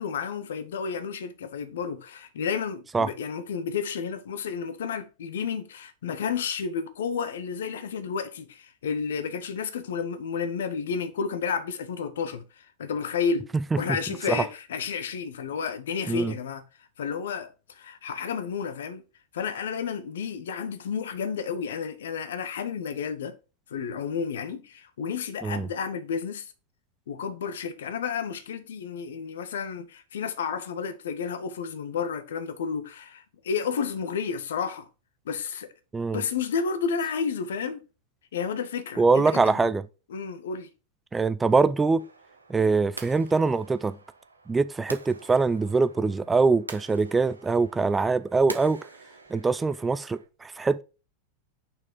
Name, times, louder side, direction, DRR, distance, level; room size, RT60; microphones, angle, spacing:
voice 1, 0.0-13.5 13.7-16.6 17.0-19.0 19.3-23.4 23.7-26.5 27.1-34.9 35.3-35.7 36.1-37.8 38.3-39.7 40.1-40.7, left 6 dB, 60° left, 0.7 m, -31 dB
voice 2, 39.0-39.8 41.1-42.0 42.5-44.0 44.5-48.9 49.3-50.8, right 4 dB, 15° right, 0.3 m, -23 dB
sound 1, 42.0-50.3, right 3 dB, 85° right, 1.0 m, -46 dB
5.9 x 4.5 x 4.9 m
figure-of-eight pair, 90°, 0 cm